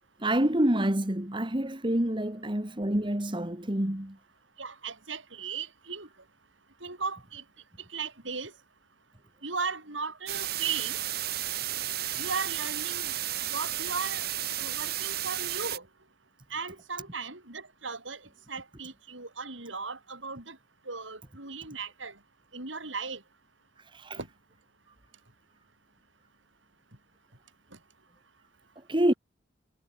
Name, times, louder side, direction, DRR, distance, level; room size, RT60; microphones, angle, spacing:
voice 1, 0.2-4.2 23.9-24.2 28.9-29.1, right 1 dB, 25° right, 1.9 m, -27 dB
voice 2, 4.6-6.1 6.8-7.4 7.9-8.5 9.4-11.0 12.2-14.3 14.6-15.8 16.5-18.2 18.5-20.6 20.9-22.1 22.5-23.2 24.2-24.3, right 5 dB, 85° right, 7.9 m, -36 dB
sound 1, 10.3-15.8, right 13 dB, 55° right, 1.6 m, -33 dB
head